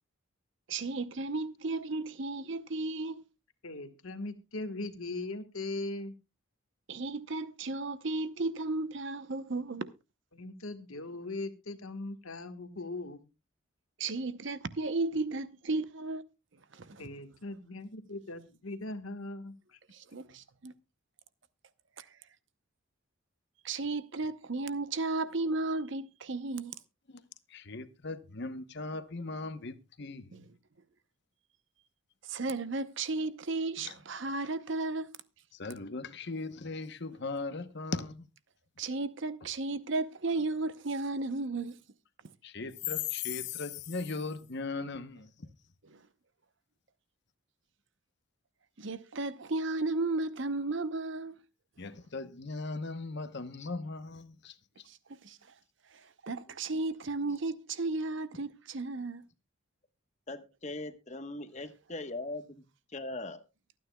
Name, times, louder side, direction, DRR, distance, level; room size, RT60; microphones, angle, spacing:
voice 1, 0.7-3.2 6.9-9.9 14.0-16.2 16.7-17.0 19.9-20.7 22.0-22.1 23.6-26.7 30.3-30.4 32.2-35.1 38.8-41.8 48.8-51.4 54.9-55.4 56.0-59.3, right 3 dB, 55° right, 0.8 m, -34 dB
voice 2, 3.6-6.1 10.3-13.2 17.0-19.8, left 2 dB, 75° left, 1.4 m, -40 dB
voice 3, 27.5-30.5 35.5-38.3 42.4-45.5 51.8-54.6, left 4 dB, 50° left, 0.9 m, -38 dB
voice 4, 60.3-62.6 62.9-63.4, left 2 dB, 30° left, 1.1 m, -40 dB
23.5 x 9.4 x 2.3 m
head